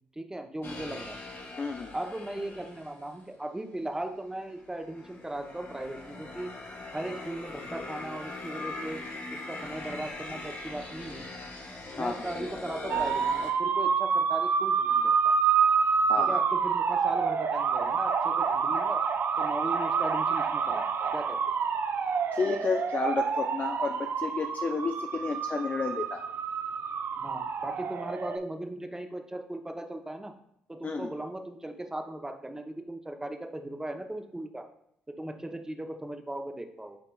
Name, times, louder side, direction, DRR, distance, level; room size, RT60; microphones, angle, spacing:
voice 1, 0.2-1.2 1.9-6.5 6.9-11.2 12.0-15.1 16.2-19.0 19.4-21.5 27.2-30.3 30.7-34.6 35.1-37.0, right 1 dB, 10° right, 5 dB, 0.7 m, -37 dB
sound 1, 0.6-3.1 3.9-13.5, left 2 dB, 50° left, 1.2 m, -41 dB
voice 2, 1.6-1.9 11.9-12.2 16.1-16.4 22.3-26.2 30.8-31.1, left 4 dB, 35° left, 3 dB, 0.4 m, -31 dB
sound 2, 12.9-28.4, right 6 dB, 50° right, 0.4 m, -28 dB
7.9 x 2.9 x 2.3 m, 0.73 s
hypercardioid pair, 45°, 5 cm